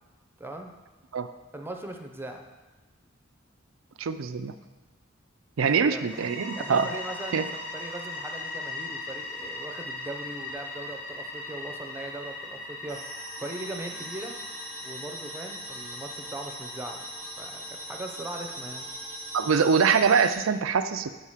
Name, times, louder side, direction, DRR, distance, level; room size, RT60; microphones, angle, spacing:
voice 1, 0.4-0.7 1.5-2.5 5.6-6.2 6.5-7.4 7.7-13.0 13.4-14.4 14.8-17.0 17.4-18.9, right 1 dB, 10° right, 3 dB, 0.7 m, -39 dB
voice 2, 4.0-4.5 5.6-6.9 7.3-7.5 19.3-21.1, right 6 dB, 90° right, 10 dB, 0.5 m, -23 dB
sound 1, 5.9-18.6, left 2 dB, 70° left, 1.7 m, -40 dB
sound 2, 12.9-20.3, right 1 dB, 15° left, 1.5 m, -40 dB
8.3 x 4.8 x 5.7 m, 1.2 s
head